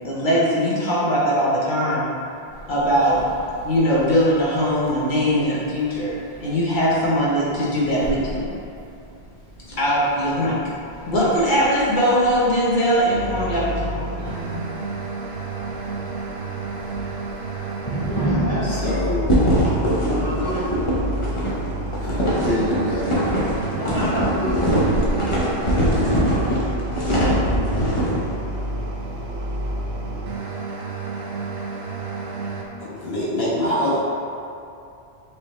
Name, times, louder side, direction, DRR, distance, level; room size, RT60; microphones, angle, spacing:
voice 1, 0.0-2.1 2.7-3.2 3.6-6.1 6.4-8.5 9.7-10.6 11.1-14.8, equal, 55° left, -7 dB, 1.1 m, -21 dB
sound 1, 2.5-19.0, right 1 dB, 10° left, 1.3 m, -35 dB
sound 2, 13.1-32.6, right 2 dB, 85° right, 0.9 m, -30 dB
voice 2, 17.9-18.9 20.0-20.9 23.8-24.7, equal, 25° right, -9 dB, 0.9 m, -29 dB
voice 3, 18.6-19.3 21.9-23.1 32.8-34.0, left 1 dB, 75° left, -10 dB, 1.5 m, -25 dB
sound 3, 19.3-28.2, equal, 35° left, 0.8 m, -22 dB
4.6 x 3.0 x 3.1 m, 2.6 s
omnidirectional pair, 1.0 m